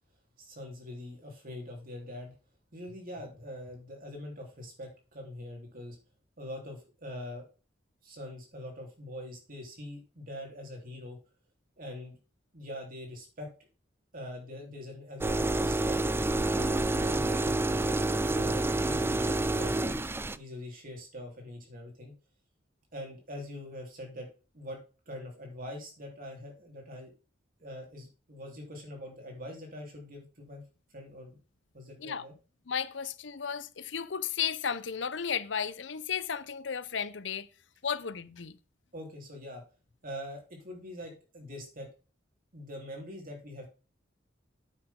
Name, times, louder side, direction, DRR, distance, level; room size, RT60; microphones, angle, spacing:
voice 1, 0.4-2.3 2.7-6.0 6.4-7.5 8.0-11.2 11.8-12.2 12.5-13.5 14.1-16.0 16.5-18.0 18.3-20.0 20.4-22.1 22.9-24.3 24.5-24.8 25.1-27.1 27.6-30.6 30.9-31.4 31.7-32.3 38.9-39.6 40.0-41.9 42.5-43.7, left 1 dB, 50° right, 3.7 m, -43 dB
sound 1, 15.2-20.4, right 2 dB, 15° right, 0.4 m, -28 dB
voice 2, 32.7-37.5 37.8-38.6, left 7 dB, 75° left, 0.7 m, -34 dB
9.2 x 8.4 x 3.8 m
head